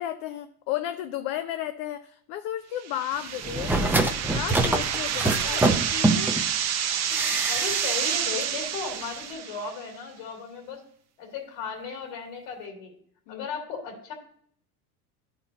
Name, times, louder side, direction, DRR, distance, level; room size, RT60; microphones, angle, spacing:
voice 1, 0.0-6.4 13.3-13.5, left 12 dB, 55° left, 8 dB, 0.6 m, -34 dB
sound 1, 2.8-9.8, right 9 dB, 40° right, 0.8 m, -29 dB
sound 2, 3.4-6.4 7.1-8.1 8.4-8.5, right 2 dB, 5° right, 0.6 m, -25 dB
voice 2, 5.2-5.7 7.3-10.8 11.2-12.9 13.3-14.1, left 5 dB, 70° left, 0 dB, 2.5 m, -36 dB
12.0 x 4.3 x 4.0 m, 0.64 s
supercardioid pair, 100°, 43 cm